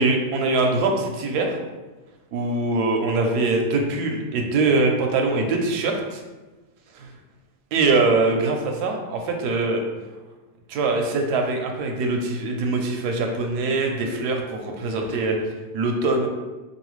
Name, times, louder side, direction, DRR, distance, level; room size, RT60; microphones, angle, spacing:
voice 1, 0.0-1.5 2.3-6.2 7.0-7.1 7.7-9.8 10.7-15.4 15.7-16.3, right 3 dB, 85° right, 2 dB, 1.2 m, -23 dB
4.0 x 3.1 x 3.0 m, 1.2 s
omnidirectional pair, 1.7 m